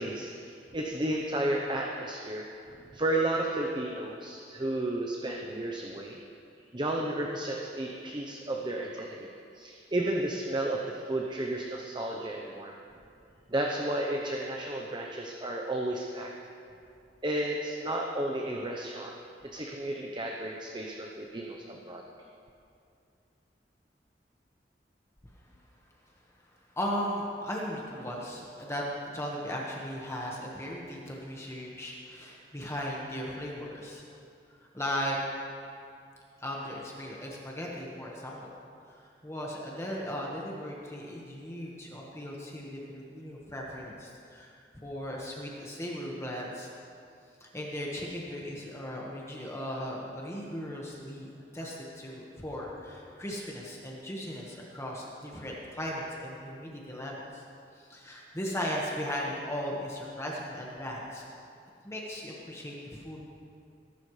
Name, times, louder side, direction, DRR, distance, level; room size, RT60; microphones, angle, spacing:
voice 1, 0.0-6.2 6.7-9.3 9.5-12.7 13.5-16.3 17.2-19.1 19.4-22.0, right 1 dB, 25° right, 0 dB, 0.8 m, -33 dB
voice 2, 26.7-34.0 34.7-35.2 36.4-38.5 38.9-44.5 44.8-46.7 47.4-57.4 57.7-61.2 61.8-63.2, equal, 15° left, -3 dB, 1.5 m, -37 dB
21.5 x 12.0 x 3.3 m, 2.5 s
head